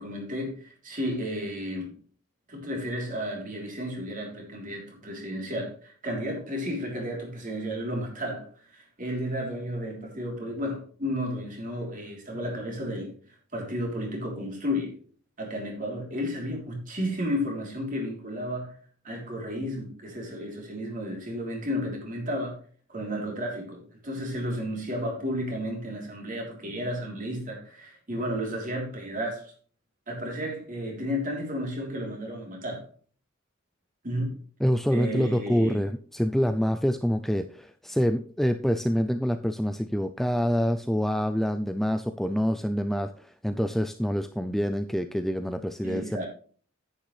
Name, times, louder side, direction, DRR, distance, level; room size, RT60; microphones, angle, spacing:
voice 1, 0.0-1.9 2.5-13.2 13.5-15.0 15.4-18.8 19.0-22.6 22.9-29.5 30.1-32.9 34.0-34.3 34.9-35.8 45.8-46.3, equal, 40° right, 3.5 m, -32 dB
voice 2, 34.6-46.2, equal, ahead, 0.3 m, -26 dB
9.9 x 9.0 x 3.3 m
head